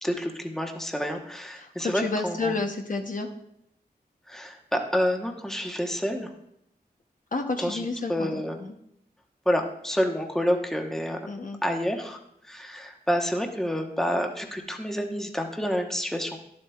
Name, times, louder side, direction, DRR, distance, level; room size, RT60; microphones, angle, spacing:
voice 1, 0.0-2.5 4.3-6.3 7.6-7.8 8.1-8.6 9.4-11.3 11.6-12.2 12.4-16.4, equal, ahead, 3 dB, 1.0 m, -28 dB
voice 2, 1.5-3.3 7.3-8.7 11.3-11.6, left 3 dB, 50° left, 3 dB, 0.8 m, -31 dB
11.5 x 7.6 x 2.3 m, 0.76 s
cardioid pair, 50°, 17 cm